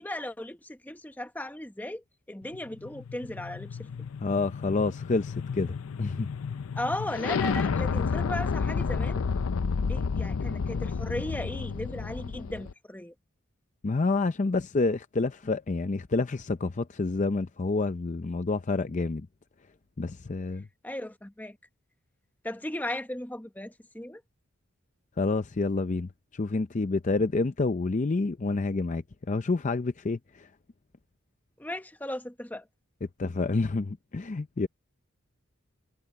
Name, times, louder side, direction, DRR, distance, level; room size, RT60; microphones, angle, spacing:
voice 1, 0.0-3.9 6.8-9.2 9.9-13.1 20.8-21.6 22.4-24.2 31.6-32.7, left 1 dB, 10° left, 1.0 m, -36 dB
sound 1, 2.5-12.7, left 5 dB, 85° left, 0.5 m, -31 dB
voice 2, 4.2-6.3 13.8-19.3 20.0-20.7 25.2-29.0 29.3-30.5 33.2-34.7, left 3 dB, 35° left, 0.5 m, -28 dB
head